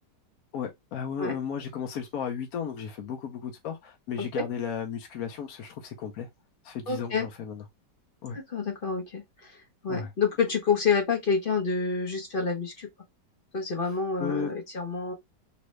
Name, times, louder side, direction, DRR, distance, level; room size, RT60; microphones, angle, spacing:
voice 1, 0.5-6.3 6.6-7.6 8.2-8.4 9.9-10.1 13.9-14.5, left 7 dB, 65° left, 1.0 m, -34 dB
voice 2, 6.9-7.3 8.5-12.9 13.5-15.1, left 5 dB, 45° left, 0.8 m, -28 dB
3.1 x 2.7 x 3.0 m
omnidirectional pair, 1.8 m